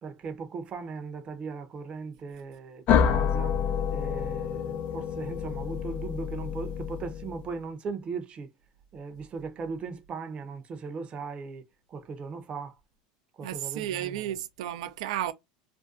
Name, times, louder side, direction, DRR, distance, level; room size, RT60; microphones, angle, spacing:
voice 1, 0.0-3.6 3.9-8.5 8.9-12.7 13.4-14.3, right 5 dB, 35° right, 0.7 m, -38 dB
sound 1, 2.9-7.6, left 8 dB, 50° left, 0.4 m, -28 dB
voice 2, 13.4-15.3, right 12 dB, 75° right, 0.4 m, -33 dB
2.5 x 2.2 x 2.4 m
supercardioid pair, 105°, 3 cm